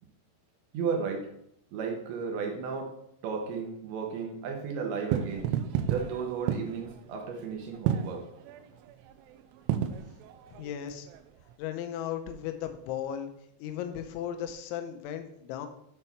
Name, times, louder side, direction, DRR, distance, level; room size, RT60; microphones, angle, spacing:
voice 1, 0.7-1.3 1.7-2.9 3.2-5.5 5.8-8.3, right 5 dB, 75° right, 2 dB, 3.2 m, -34 dB
sound 1, 5.0-11.5, right 10 dB, 90° right, 3.1 m, -32 dB
voice 2, 10.6-11.1 11.6-13.3 13.6-15.7, left 10 dB, 80° left, 6 dB, 3.1 m, -36 dB
8.4 x 4.3 x 5.7 m, 0.74 s
omnidirectional pair, 5.5 m